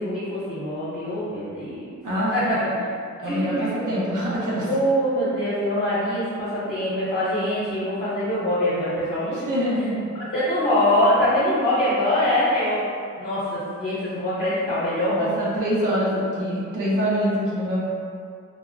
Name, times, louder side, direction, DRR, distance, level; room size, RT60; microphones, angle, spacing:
voice 1, 0.0-1.9 2.3-2.7 3.2-3.7 4.6-9.5 10.3-12.8 13.2-15.5 16.0-16.1, left 1 dB, 30° left, -12 dB, 0.7 m, -23 dB
voice 2, 2.0-2.3 3.2-4.7 9.3-10.1 15.1-17.8, equal, 85° right, -7 dB, 0.7 m, -25 dB
3.4 x 2.0 x 2.5 m, 2.3 s
wide cardioid pair, 135°, 30 cm